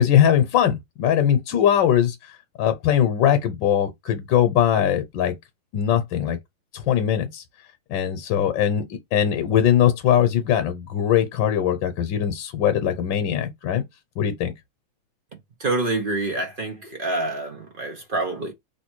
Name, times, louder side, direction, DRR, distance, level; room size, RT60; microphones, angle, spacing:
voice 1, 0.0-2.1 2.6-5.3 5.7-6.4 6.7-7.4 7.9-8.8 9.1-13.8 14.2-14.5, left 9 dB, 75° left, 1.4 m, -20 dB
voice 2, 15.6-18.5, right 2 dB, 45° right, 0.7 m, -27 dB
3.2 x 3.0 x 4.5 m
omnidirectional pair, 2.1 m